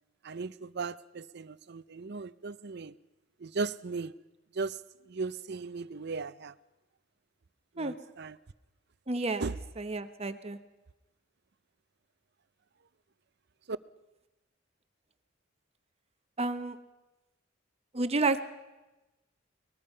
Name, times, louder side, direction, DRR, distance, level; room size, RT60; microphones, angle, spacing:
voice 1, 0.2-3.0 3.4-4.1 4.5-4.8 5.1-6.5 7.8-8.4 9.4-9.6 13.7-13.8, right 4 dB, 60° right, 16 dB, 0.6 m, -37 dB
voice 2, 9.1-9.4 9.8-10.6 16.4-16.8 17.9-18.4, right 3 dB, 30° right, 10 dB, 0.9 m, -30 dB
23.0 x 20.0 x 5.6 m, 1.0 s
head